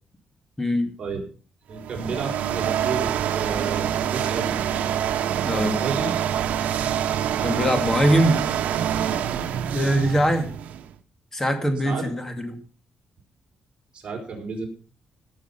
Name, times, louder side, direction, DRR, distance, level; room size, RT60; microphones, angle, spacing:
voice 1, 0.6-0.9 5.4-5.7 7.4-8.4 9.7-10.5 11.3-12.6, equal, 15° left, 7 dB, 2.2 m, -22 dB
voice 2, 1.7-4.7 5.5-6.2 9.3-9.5 11.8-12.1 13.9-14.7, right 4 dB, 40° right, 0 dB, 4.9 m, -32 dB
sound 1, 1.7-10.9, right 9 dB, 85° right, 1.0 m, -26 dB
17.5 x 6.8 x 5.5 m, 0.39 s
cardioid pair, 120°, 2 cm